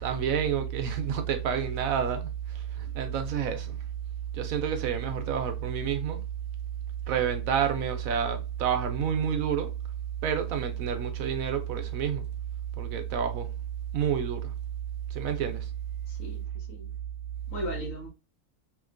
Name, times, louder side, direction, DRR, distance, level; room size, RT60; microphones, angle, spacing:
voice 1, 0.0-3.8 4.3-6.3 7.1-9.7 10.2-12.3 12.8-13.5 13.9-14.5 15.1-15.7, right 8 dB, 70° right, 0.9 m, -29 dB
voice 2, 16.1-16.9 17.5-18.1, equal, 60° left, 1.3 m, -37 dB
2.9 x 2.8 x 2.4 m
omnidirectional pair, 1.6 m